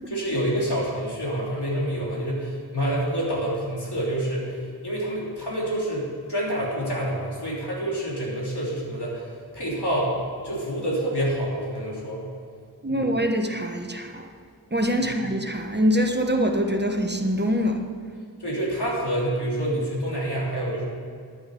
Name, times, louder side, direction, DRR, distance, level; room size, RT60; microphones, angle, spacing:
voice 1, 0.1-12.2 12.9-13.1 15.0-15.1 18.4-20.9, right 1 dB, 85° left, -5 dB, 3.6 m, -27 dB
voice 2, 12.8-14.3 14.7-17.8, equal, 25° right, 4 dB, 1.1 m, -24 dB
10.5 x 9.7 x 6.8 m, 2.2 s
wide cardioid pair, 40°, 39 cm